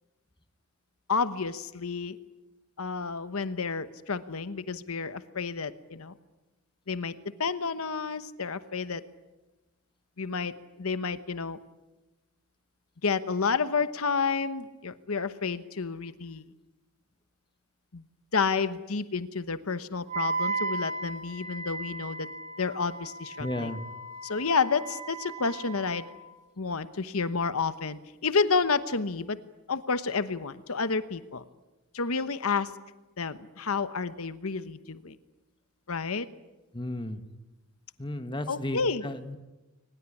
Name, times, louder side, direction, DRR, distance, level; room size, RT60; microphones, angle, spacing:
voice 1, 1.1-2.2 2.8-6.1 6.9-9.0 10.2-11.6 13.0-16.4 17.9-18.0 18.3-22.3 22.6-23.7 24.2-26.1 26.6-29.4 29.7-31.4 31.9-32.7 33.2-35.1 35.9-36.3 38.5-39.0, left 4 dB, 80° left, 13 dB, 1.1 m, -30 dB
Wind instrument woodwind instrument, 20.1-26.2, right 3 dB, 35° right, 1.9 m, -36 dB
voice 2, 23.4-23.8 36.7-37.2 38.0-39.4, left 1 dB, 25° left, 9 dB, 1.4 m, -34 dB
23.0 x 20.0 x 10.0 m, 1.1 s
head